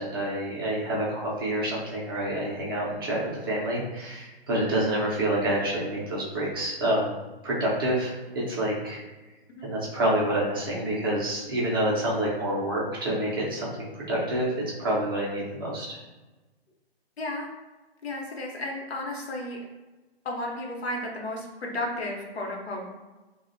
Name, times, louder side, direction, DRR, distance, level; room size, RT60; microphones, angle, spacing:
voice 1, 0.0-7.1 7.4-9.0 9.6-14.5 14.8-16.0, right 1 dB, 25° right, -5 dB, 0.4 m, -28 dB
voice 2, 17.2-17.5 18.0-19.6 20.2-22.9, left 1 dB, 85° left, 0 dB, 0.7 m, -33 dB
2.4 x 2.1 x 2.5 m, 1.1 s
hypercardioid pair, 135°, 31 cm